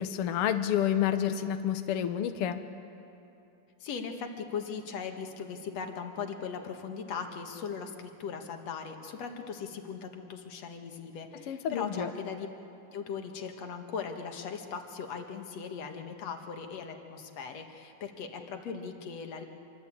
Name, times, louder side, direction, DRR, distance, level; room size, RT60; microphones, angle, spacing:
voice 1, 0.0-2.6 11.5-12.1, left 10 dB, 70° left, 8 dB, 1.4 m, -29 dB
voice 2, 3.8-12.5 12.9-19.4, left 6 dB, 55° left, 5 dB, 2.5 m, -39 dB
26.5 x 23.0 x 8.7 m, 2.9 s
omnidirectional pair, 3.8 m